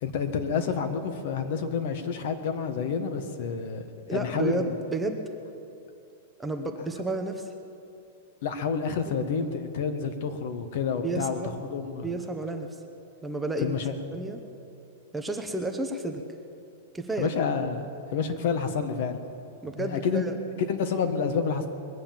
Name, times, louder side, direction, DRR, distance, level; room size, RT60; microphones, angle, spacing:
voice 1, 0.0-4.7 8.4-12.1 13.6-13.9 17.2-19.2 19.8-20.2 20.7-21.7, left 6 dB, 55° left, 8 dB, 1.4 m, -29 dB
voice 2, 4.1-5.3 6.4-7.5 11.0-11.5 12.0-12.7 13.2-13.8 14.1-14.4 15.1-16.2 16.9-17.3 19.6-20.4, right 2 dB, 5° right, 4 dB, 0.8 m, -31 dB
21.5 x 7.6 x 7.3 m, 2.6 s
supercardioid pair, 150°, 0 cm